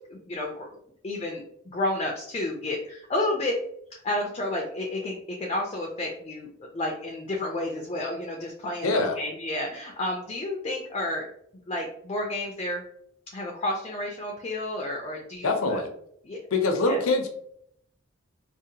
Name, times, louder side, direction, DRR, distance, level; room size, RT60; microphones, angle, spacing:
voice 1, 0.1-0.7 1.0-3.6 4.0-11.3 11.7-12.8 13.3-15.8 16.2-16.4 16.8-17.0, left 1 dB, 25° left, 0 dB, 0.3 m, -31 dB
voice 2, 8.8-9.2 15.4-15.9 16.5-17.3, left 3 dB, 80° left, 5 dB, 0.5 m, -24 dB
2.7 x 2.0 x 2.7 m, 0.69 s
head